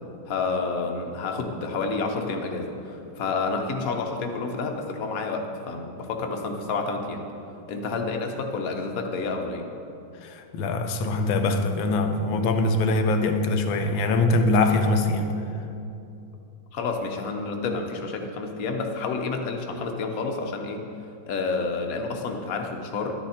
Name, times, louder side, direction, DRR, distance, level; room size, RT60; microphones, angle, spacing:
voice 1, 0.3-7.2 7.7-9.6 16.7-20.8 21.3-23.1, left 4 dB, 50° left, 3 dB, 1.3 m, -29 dB
voice 2, 10.2-15.4, left 2 dB, 80° left, 6 dB, 1.6 m, -23 dB
12.0 x 10.0 x 4.4 m, 2.7 s
omnidirectional pair, 2.2 m